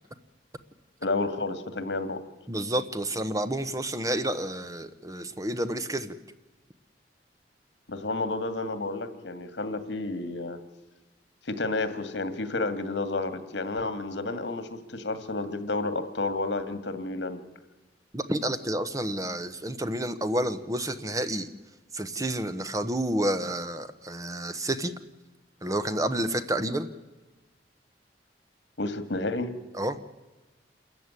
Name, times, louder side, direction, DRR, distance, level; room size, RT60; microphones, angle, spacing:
voice 1, 1.0-2.2 7.9-10.6 11.4-17.4 28.8-29.5, left 2 dB, 80° left, 10 dB, 2.0 m, -31 dB
voice 2, 2.5-6.1 18.1-21.5 21.9-24.9 25.6-26.9 29.8-30.0, right 1 dB, 20° right, 11 dB, 1.0 m, -29 dB
27.0 x 14.5 x 9.7 m, 1.2 s
head